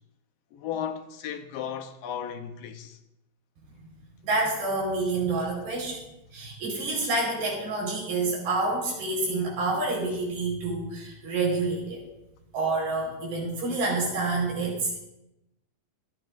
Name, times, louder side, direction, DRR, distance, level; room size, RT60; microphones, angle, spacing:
voice 1, 0.5-3.0, left 8 dB, 75° left, 2.4 m, -35 dB
voice 2, 4.2-6.0 6.3-12.0 12.5-15.0, right 3 dB, 75° right, 6.4 m, -28 dB
26.5 x 9.6 x 2.6 m
omnidirectional pair, 4.3 m